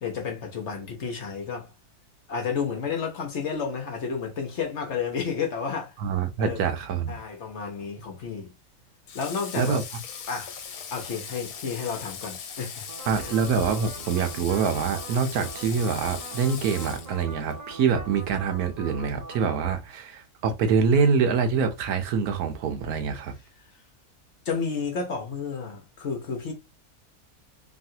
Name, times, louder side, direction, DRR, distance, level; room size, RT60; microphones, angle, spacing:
voice 1, 0.0-1.7 2.3-5.9 6.4-6.6 7.1-8.5 9.1-9.8 10.3-10.5 10.9-12.9 13.2-13.3 24.4-26.5, left 6 dB, 55° left, 1.0 m, -31 dB
voice 2, 6.0-7.2 9.5-9.8 13.1-23.3, right 6 dB, 85° right, 1.2 m, -25 dB
Water / Water tap faucet, 9.1-17.6, left 7 dB, 80° left, 1.1 m, -39 dB
sound 1, 12.9-19.7, right 2 dB, 45° right, 0.5 m, -42 dB
3.1 x 2.4 x 2.7 m
omnidirectional pair, 1.6 m